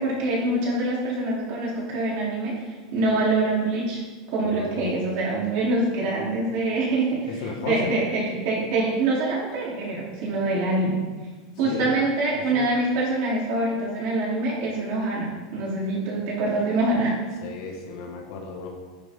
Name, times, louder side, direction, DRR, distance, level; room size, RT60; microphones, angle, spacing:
voice 1, 0.0-2.5 2.9-4.0 4.3-11.0 11.6-17.2, right 2 dB, 50° right, -5 dB, 3.8 m, -25 dB
voice 2, 4.4-4.9 7.3-7.9 11.6-12.0 12.5-12.6 17.4-18.7, left 4 dB, 65° left, 0 dB, 1.7 m, -34 dB
11.0 x 9.9 x 3.9 m, 1.3 s
supercardioid pair, 160°, 3 cm